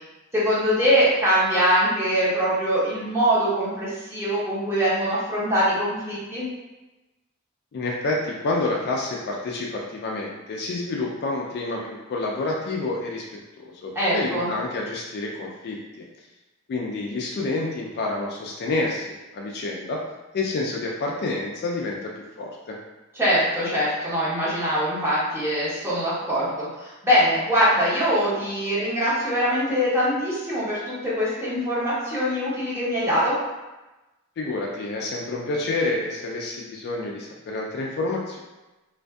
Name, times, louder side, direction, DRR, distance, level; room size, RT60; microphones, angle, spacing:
voice 1, 0.3-6.5 13.9-14.5 23.1-33.4, equal, 10° right, -9 dB, 0.9 m, -23 dB
voice 2, 7.7-16.0 16.7-20.0 20.3-22.1 22.4-22.8 34.4-38.4, left 2 dB, 50° left, -1 dB, 0.3 m, -28 dB
2.5 x 2.5 x 2.2 m, 1.1 s
head